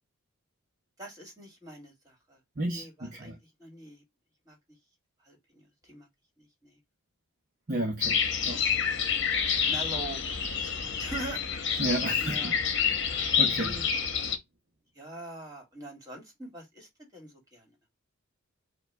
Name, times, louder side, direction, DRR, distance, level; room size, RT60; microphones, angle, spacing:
voice 1, 1.0-2.4 2.7-3.3 3.6-4.0 4.5-4.6 5.2-6.1 6.4-6.8 8.5-9.3 9.6-10.2 10.5-11.4 11.7-11.8 12.2-12.6 13.6-13.9 14.9-17.8, right 2 dB, 15° right, 2.0 m, -43 dB
voice 2, 2.6-3.4 7.7-8.6 11.8-12.5 13.0-13.7, right 1 dB, 40° right, 0.7 m, -33 dB
sound 1, 8.0-14.4, left 7 dB, 55° left, 1.0 m, -28 dB
5.2 x 2.3 x 4.5 m
head